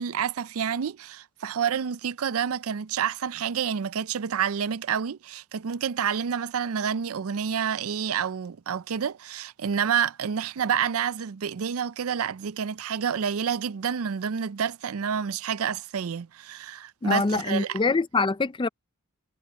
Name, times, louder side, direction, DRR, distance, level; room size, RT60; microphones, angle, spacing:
voice 1, 0.0-17.8, right 7 dB, 75° right, 0.5 m, -28 dB
voice 2, 17.0-18.7, left 3 dB, 20° left, 0.4 m, -24 dB
head